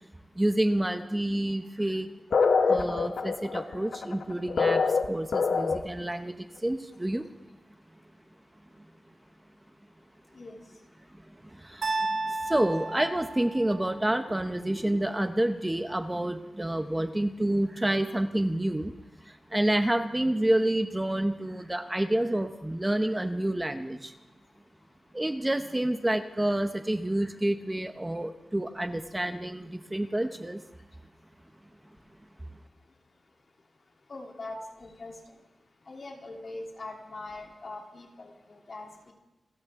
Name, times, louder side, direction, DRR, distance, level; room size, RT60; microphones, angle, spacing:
voice 1, 0.4-2.1 2.6-4.8 5.1-6.3 6.6-7.3 11.7-11.8 12.5-18.9 19.5-24.1 25.1-30.6, right 1 dB, 10° right, 8 dB, 0.7 m, -28 dB
sound 1, 2.3-6.0, left 4 dB, 80° left, 1.0 m, -25 dB
sound 2, 11.8-14.0, right 2 dB, 80° right, 2.4 m, -32 dB
voice 2, 14.7-15.0 34.1-35.1 35.9-39.1, left 2 dB, 50° left, 0 dB, 3.0 m, -42 dB
28.5 x 13.5 x 3.6 m, 1.0 s
wide cardioid pair, 125°, 0 cm